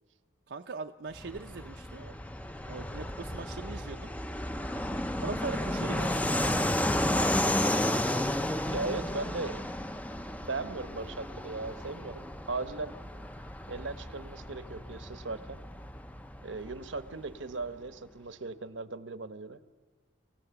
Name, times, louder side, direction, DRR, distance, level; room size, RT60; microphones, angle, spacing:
voice 1, 0.5-2.1 2.7-4.1 5.2-6.3, right 4 dB, 65° right, 5 dB, 0.6 m, -40 dB
Fixed-wing aircraft airplane, 1.1-17.3, left 1 dB, 10° left, 0.5 m, -33 dB
voice 2, 8.7-9.6 10.4-13.0 13.7-15.6 16.4-19.6, right 3 dB, 80° right, 12 dB, 1.0 m, -38 dB
25.5 x 17.0 x 7.0 m, 1.4 s
head